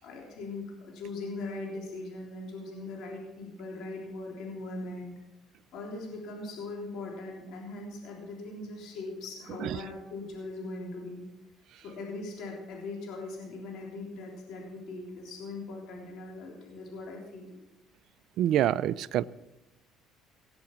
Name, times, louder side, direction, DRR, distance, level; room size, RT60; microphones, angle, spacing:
voice 1, 0.0-5.1 5.7-11.3 11.8-17.6, left 2 dB, 70° left, 3.5 m, -40 dB
voice 2, 18.4-19.2, right 11 dB, 65° right, 0.4 m, -26 dB
18.0 x 6.9 x 7.3 m
cardioid pair, 100°, 0 cm